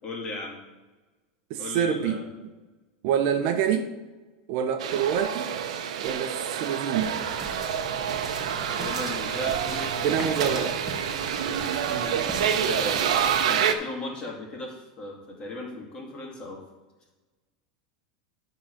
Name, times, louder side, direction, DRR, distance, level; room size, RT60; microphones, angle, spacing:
voice 1, 0.0-0.6 1.6-2.3 8.7-10.7 11.9-16.6, left 2 dB, 25° left, -1 dB, 2.3 m, -37 dB
voice 2, 1.5-2.5 3.0-3.9 4.5-5.5 6.0-7.2 10.0-10.7 11.9-12.1, right 8 dB, 55° right, 7 dB, 0.8 m, -26 dB
sound 1, 4.8-13.7, right 8 dB, 90° right, 0.8 m, -27 dB
sound 2, 7.0-13.4, right 2 dB, 15° right, 1.5 m, -41 dB
11.0 x 3.9 x 6.4 m, 1.2 s
supercardioid pair, 145°, 3 cm